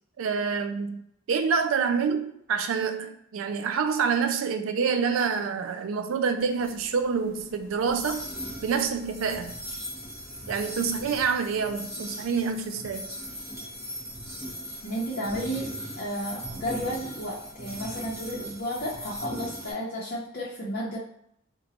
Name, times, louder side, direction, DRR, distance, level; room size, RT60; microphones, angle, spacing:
voice 1, 0.2-1.0 1.3-8.2 8.6-9.5 10.5-13.1, right 5 dB, 75° right, 7 dB, 0.4 m, -27 dB
sound 1, 6.4-19.7, equal, 15° right, 0.9 m, -39 dB
voice 2, 14.8-15.7 16.0-21.0, equal, 45° left, -7 dB, 0.7 m, -32 dB
3.8 x 2.2 x 2.8 m, 0.74 s
head